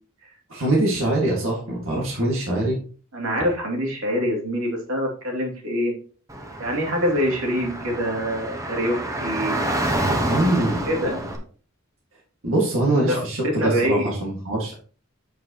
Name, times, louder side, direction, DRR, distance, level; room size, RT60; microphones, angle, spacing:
voice 1, 0.5-2.8 10.3-10.8 12.4-14.7, right 1 dB, 70° right, -4 dB, 2.1 m, -23 dB
voice 2, 3.1-5.9 6.6-9.7 10.8-11.2 13.1-13.2 13.4-14.0, equal, 85° right, 0 dB, 2.8 m, -25 dB
Car / Traffic noise roadway noise, 6.3-11.4, right 1 dB, 15° right, 1.2 m, -28 dB
7.8 x 7.6 x 3.0 m, 0.42 s
head